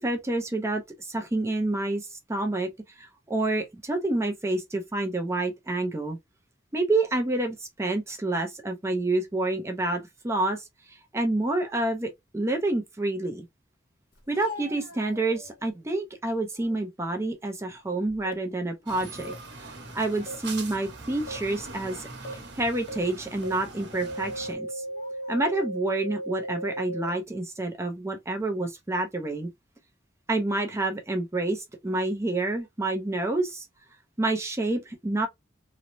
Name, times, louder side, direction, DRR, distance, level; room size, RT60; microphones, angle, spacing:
voice 1, 0.0-2.7 3.0-6.2 6.7-13.5 14.3-19.3 19.9-24.8 25.3-29.5 30.3-33.7 34.2-35.3, right 2 dB, 15° right, 0.5 m, -28 dB
Speech, 14.1-15.8 16.3-16.8 17.3-18.5 18.8-19.0 19.8-20.8 21.3-21.4 22.2-22.5 23.3-24.0 24.8-25.5, left 3 dB, 55° left, 1.4 m, -47 dB
sound 1, 18.2-18.3 19.2-19.3 20.3-20.4 21.3-21.4 22.2-22.3 22.9-23.0 23.4-23.5 23.9-27.1, right 1 dB, 90° left, 0.5 m, -35 dB
sound 2, 18.9-24.5, right 3 dB, 70° right, 1.0 m, -42 dB
3.0 x 2.0 x 2.5 m
head